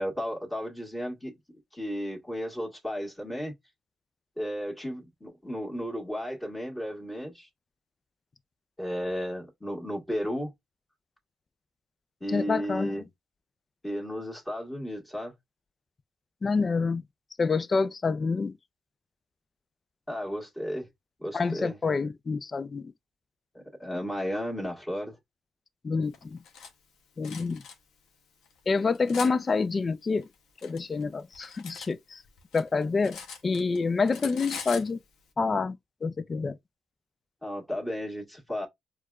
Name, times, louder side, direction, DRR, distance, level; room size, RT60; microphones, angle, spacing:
voice 1, 0.0-1.4 1.7-3.5 4.4-7.5 8.8-10.5 12.2-13.0 13.8-15.3 20.1-20.9 21.2-21.8 23.5-25.2 37.4-38.7, equal, 10° left, 1.5 m, -34 dB
voice 2, 12.3-13.0 16.4-17.0 17.4-18.6 21.3-22.9 25.8-26.4 27.2-27.6 28.7-30.3 30.6-32.2 32.5-35.0 35.4-36.6, left 4 dB, 35° left, 0.4 m, -27 dB
Cutlery silverware, 26.1-26.7 27.2-27.8 28.4-29.3 30.2-31.9 32.2-33.8 34.1-34.9, left 6 dB, 80° left, 0.9 m, -42 dB
4.6 x 2.3 x 2.4 m
cardioid pair, 90°, 0 cm